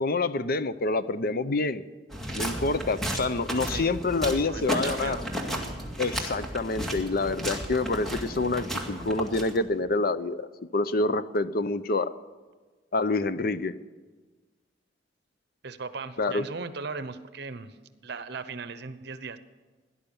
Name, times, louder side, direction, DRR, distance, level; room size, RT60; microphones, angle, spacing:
voice 1, 0.0-1.8 2.3-5.2 6.0-12.1 12.9-13.7 16.2-16.4, left 3 dB, 55° left, 13 dB, 0.7 m, -27 dB
sound 1, 2.1-9.8, equal, ahead, 2.1 m, -33 dB
voice 2, 4.5-5.3 15.6-17.8 18.0-19.4, right 4 dB, 65° right, 12 dB, 0.9 m, -38 dB
17.5 x 11.5 x 7.1 m, 1.3 s
head